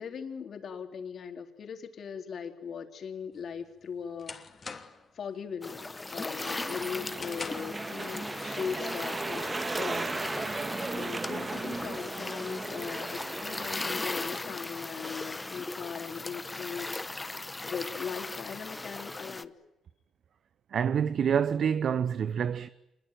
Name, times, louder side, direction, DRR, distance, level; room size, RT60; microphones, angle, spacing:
voice 1, 0.0-4.7 5.1-19.5, left 6 dB, 55° left, 3.8 m, -39 dB
sound 1, 3.4-5.2 5.6-5.9 6.3-7.9, left 4 dB, 35° left, 2.9 m, -43 dB
sound 2, 5.6-19.4, left 2 dB, 20° left, 1.0 m, -38 dB
sound 3, 6.4-13.8, right 3 dB, 25° right, 1.6 m, -36 dB
voice 2, 20.7-22.7, right 7 dB, 60° right, 0.9 m, -27 dB
26.5 x 22.0 x 9.3 m
cardioid pair, 90°, 0 cm